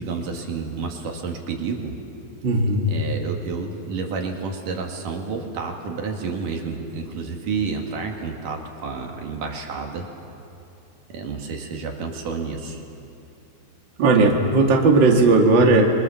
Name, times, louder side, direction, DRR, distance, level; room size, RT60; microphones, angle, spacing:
voice 1, 0.0-2.0 2.9-10.1 11.1-12.8, right 4 dB, 65° right, 2 dB, 3.5 m, -30 dB
voice 2, 2.4-2.9 14.0-15.8, right 3 dB, 40° right, 1 dB, 2.3 m, -16 dB
30.0 x 23.0 x 7.0 m, 2.8 s
omnidirectional pair, 4.1 m